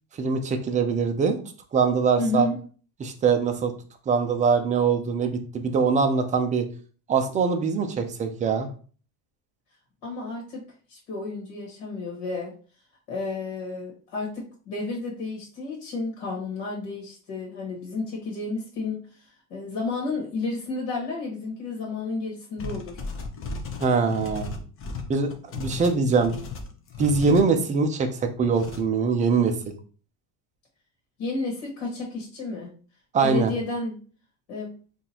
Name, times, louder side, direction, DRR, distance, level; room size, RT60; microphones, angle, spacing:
voice 1, 0.2-1.4 1.7-2.5 3.0-3.7 4.1-6.6 7.1-8.7 23.8-24.5 25.1-26.3 27.0-29.5 33.1-33.5, right 5 dB, 20° right, 5 dB, 0.3 m, -23 dB
voice 2, 2.2-2.5 10.0-10.6 10.9-12.5 13.1-19.1 19.5-23.0 31.2-32.7 33.2-34.0 34.5-34.8, left 3 dB, 60° left, -1 dB, 1.4 m, -31 dB
sound 1, 22.6-27.5 28.5-28.8, left 4 dB, 30° left, 0.6 m, -35 dB
3.7 x 2.5 x 2.8 m, 0.40 s
supercardioid pair, 115°, 48 cm